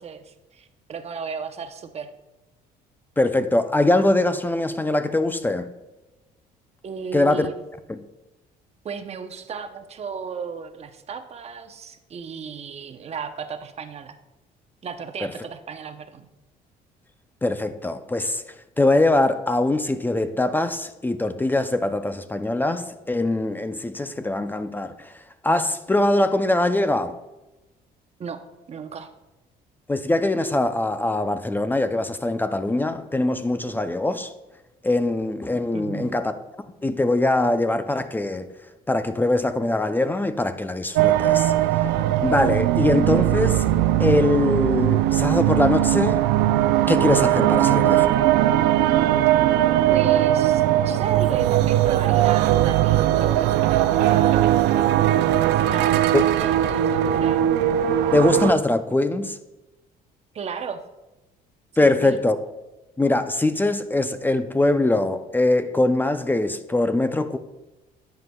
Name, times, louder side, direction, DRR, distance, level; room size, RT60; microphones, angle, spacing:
voice 1, 0.0-2.1 6.8-7.5 8.8-14.1 14.8-16.3 28.2-29.1 35.7-36.2 47.5-47.8 49.9-54.7 55.4-57.5 60.3-60.8 61.7-62.2, right 6 dB, 40° right, 0.8 m, -35 dB
voice 2, 3.2-5.7 7.1-7.5 7.9-8.0 17.4-18.4 18.8-25.1 25.4-27.1 29.9-34.3 34.8-36.3 36.8-38.5 38.9-41.5 42.2-43.6 44.0-46.3 46.9-48.0 56.1-56.2 58.1-59.4 61.8-62.4 63.0-67.4, left 2 dB, 10° left, 0.4 m, -22 dB
sound 1, 40.9-58.5, right 12 dB, 90° right, 0.4 m, -19 dB
11.0 x 7.9 x 2.3 m
cardioid pair, 110°, 17 cm